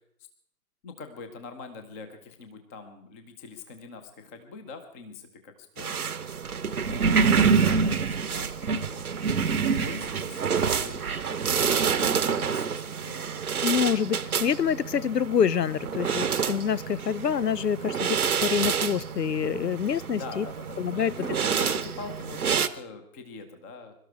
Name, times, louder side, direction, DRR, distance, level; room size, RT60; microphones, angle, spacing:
voice 1, 0.8-6.1 6.8-9.1 9.8-11.4 12.0-13.4 20.1-23.9, left 4 dB, 10° left, 8 dB, 0.7 m, -43 dB
sound 1, 5.8-22.7, right 6 dB, 65° right, 1.0 m, -27 dB
voice 2, 13.6-20.5 20.8-21.1, left 7 dB, 90° left, 23 dB, 0.6 m, -26 dB
22.5 x 12.5 x 4.6 m, 0.69 s
figure-of-eight pair, 130°, 47 cm